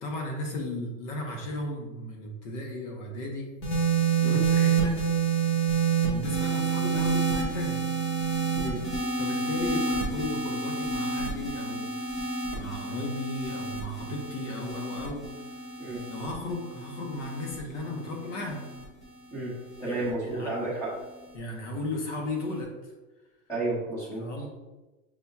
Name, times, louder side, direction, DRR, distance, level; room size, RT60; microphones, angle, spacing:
voice 1, 0.0-3.5 4.2-5.0 6.0-7.8 9.2-12.1 12.5-15.3 16.1-18.6 19.8-20.5 21.3-22.9 24.2-24.5, left 2 dB, 60° left, 1 dB, 1.1 m, -35 dB
sound 1, 3.6-20.1 21.0-21.4, right 5 dB, 20° left, 0.4 m, -29 dB
voice 2, 19.8-20.9 23.5-24.2, right 2 dB, 5° left, -8 dB, 0.9 m, -31 dB
6.2 x 2.8 x 2.3 m, 1.1 s
supercardioid pair, 180°, 42 cm